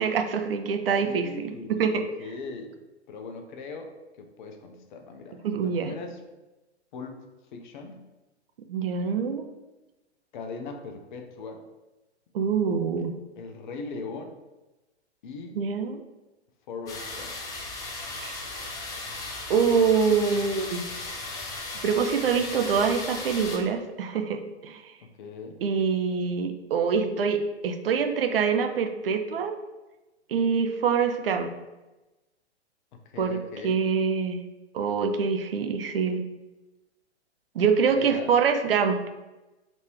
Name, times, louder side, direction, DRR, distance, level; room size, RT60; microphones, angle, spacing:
voice 1, 0.0-2.0 5.4-5.9 8.7-9.5 12.3-13.1 15.5-16.0 18.2-18.4 19.5-20.8 21.8-24.9 25.6-29.6 30.3-31.5 33.2-33.4 33.6-34.4 34.7-36.2 37.5-39.0, right 6 dB, 55° right, 6 dB, 0.5 m, -25 dB
voice 2, 0.9-2.7 3.1-3.9 4.2-6.2 6.9-7.3 7.5-8.0 10.3-11.6 13.4-14.3 15.2-15.6 16.7-17.3 25.2-25.6 32.9-33.8 37.8-38.3, left 4 dB, 45° left, 4 dB, 0.7 m, -39 dB
sound 1, 16.9-23.6, left 2 dB, 10° left, 0.4 m, -36 dB
3.9 x 3.5 x 3.1 m, 1.1 s
figure-of-eight pair, 105°, 34 cm